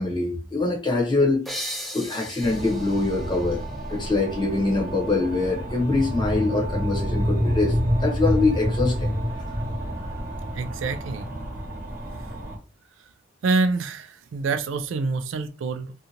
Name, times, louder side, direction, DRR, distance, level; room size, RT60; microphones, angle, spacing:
voice 1, 0.0-1.5 1.9-3.6 3.9-7.7 8.0-9.1, left 3 dB, 25° left, 0.9 m, -24 dB
sound 1, 1.5-4.9, equal, ahead, 0.4 m, -38 dB
sound 2, 2.4-12.6, equal, 45° right, 1.0 m, -28 dB
voice 2, 10.5-11.3 13.4-15.9, right 3 dB, 85° right, 0.4 m, -26 dB
2.7 x 2.4 x 2.8 m
head